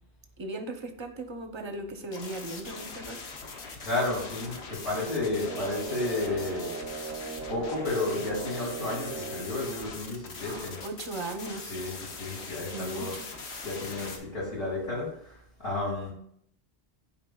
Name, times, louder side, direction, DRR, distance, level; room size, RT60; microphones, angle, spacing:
voice 1, 0.4-3.2 10.4-11.7 12.7-13.7 14.0-14.2, right 2 dB, 30° right, 6 dB, 0.6 m, -38 dB
sound 1, 2.0-14.2, left 4 dB, 85° left, 1.2 m, -41 dB
voice 2, 3.8-10.8 11.7-13.2 13.6-16.1, left 2 dB, 65° left, -5 dB, 2.8 m, -32 dB
sound 2, 5.4-9.6, right 4 dB, 90° right, 0.9 m, -38 dB
10.5 x 4.6 x 2.3 m, 0.70 s
omnidirectional pair, 1.1 m